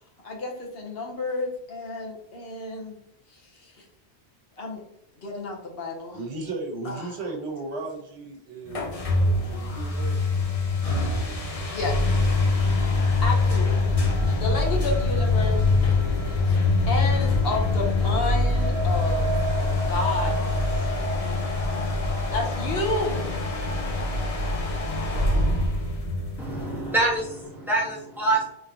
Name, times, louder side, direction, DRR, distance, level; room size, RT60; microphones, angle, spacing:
voice 1, 0.2-3.0 3.3-3.8 4.6-4.8 5.2-6.2 6.8-7.1 11.7-12.3 13.2-13.9 14.4-15.8 16.5-16.6 16.9-20.9 22.3-23.3, left 2 dB, 65° left, 0 dB, 1.1 m, -31 dB
voice 2, 6.1-10.3 22.0-22.3, right 3 dB, 75° right, 1 dB, 1.2 m, -36 dB
sound 1, 8.7-27.2, left 2 dB, 40° left, 0.7 m, -24 dB
voice 3, 26.4-28.5, right 2 dB, ahead, -5 dB, 1.1 m, -25 dB
3.7 x 3.5 x 2.8 m, 0.75 s
omnidirectional pair, 1.1 m